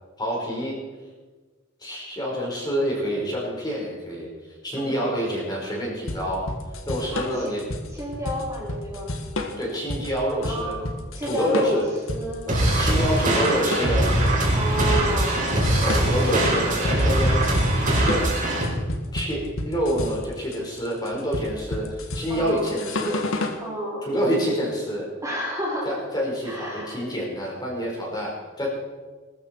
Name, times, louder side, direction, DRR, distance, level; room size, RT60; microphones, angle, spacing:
voice 1, 0.2-0.8 1.8-4.3 4.6-6.5 6.9-7.6 9.6-10.8 11.2-11.8 12.5-14.1 15.4-17.6 18.0-18.3 19.1-23.4 24.0-25.1 25.8-28.7, equal, 20° left, -3 dB, 5.0 m, -27 dB
voice 2, 4.7-5.1 7.1-7.5 7.9-9.1 10.4-12.4 14.5-15.5 15.8-16.5 22.3-22.7 23.6-24.1 25.2-25.9 26.4-27.0, equal, 15° right, -5 dB, 3.9 m, -30 dB
sound 1, 6.1-23.6, left 2 dB, 70° left, 1.7 m, -31 dB
sound 2, 12.5-18.6, right 1 dB, 40° right, 5.2 m, -22 dB
20.5 x 13.5 x 4.7 m, 1.3 s
head